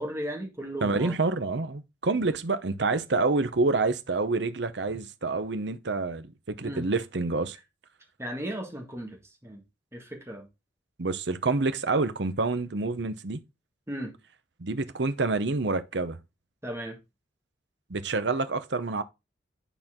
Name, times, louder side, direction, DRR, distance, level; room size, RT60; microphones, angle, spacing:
voice 1, 0.0-1.2 6.6-6.9 8.2-9.6 9.9-10.5 13.9-14.1 16.6-17.0, equal, 15° right, 1.8 m, -36 dB
voice 2, 0.8-7.6 11.0-13.4 14.6-16.2 17.9-19.0, right 3 dB, 65° right, 0.8 m, -27 dB
10.0 x 4.5 x 3.7 m
head